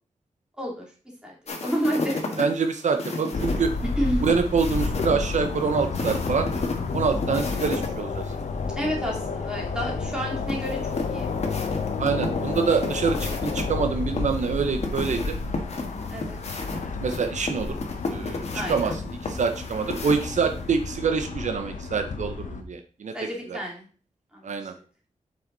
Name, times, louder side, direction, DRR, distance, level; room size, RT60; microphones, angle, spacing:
voice 1, 1.2-2.5 4.0-4.2 8.7-11.3 16.1-16.4 18.5-18.9 23.1-23.9, equal, 5° right, -3 dB, 2.8 m, -30 dB
sound 1, 1.5-7.9 8.2-8.3 10.5-13.6 14.2-20.6, left 3 dB, 55° left, 1.6 m, -33 dB
voice 2, 2.4-3.7 4.2-6.5 6.9-8.3 12.0-15.4 17.0-17.8 18.1-23.1 23.5-23.6 24.4-24.7, right 5 dB, 70° right, 7 dB, 0.7 m, -26 dB
sound 2, 3.3-22.6, left 4 dB, 80° left, 1.0 m, -31 dB
7.6 x 5.7 x 3.9 m, 0.39 s
wide cardioid pair, 150°, 13 cm